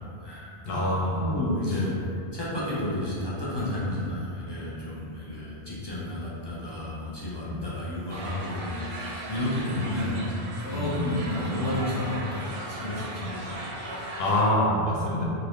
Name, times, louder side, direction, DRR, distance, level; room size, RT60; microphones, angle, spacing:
voice 1, 0.0-0.5 1.1-2.0 2.3-14.2, left 1 dB, 35° left, -8 dB, 0.4 m, -31 dB
voice 2, 0.7-1.3 7.4-7.6 10.7-11.0 14.2-15.2, left 1 dB, 60° left, -4 dB, 0.8 m, -25 dB
sound 1, 8.1-14.4, right 1 dB, 70° right, 0.8 m, -38 dB
2.8 x 2.5 x 3.4 m, 2.6 s
omnidirectional pair, 1.2 m